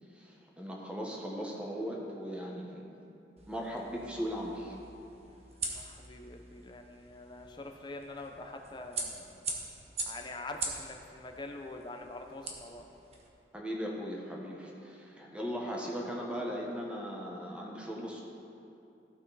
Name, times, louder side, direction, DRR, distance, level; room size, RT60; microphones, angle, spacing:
voice 1, 0.1-3.0 3.5-4.8 13.5-18.2, equal, 5° right, -2 dB, 1.2 m, -38 dB
sound 1, 3.4-13.3, right 3 dB, 35° right, 1.1 m, -43 dB
voice 2, 5.6-9.4 10.0-12.9, left 2 dB, 25° left, 4 dB, 0.7 m, -45 dB
14.5 x 6.2 x 4.1 m, 2.8 s
head